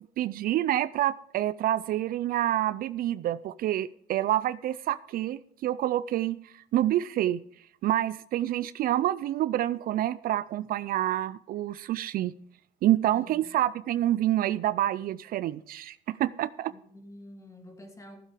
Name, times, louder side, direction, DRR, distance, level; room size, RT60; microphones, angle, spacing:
voice 1, 0.2-7.4 7.8-12.3 12.8-16.7, right 13 dB, 60° right, 17 dB, 0.4 m, -27 dB
voice 2, 13.1-13.4 16.7-18.2, left 1 dB, 20° left, 3 dB, 2.4 m, -48 dB
15.0 x 7.5 x 5.1 m, 0.66 s
cardioid pair, 110°, 17 cm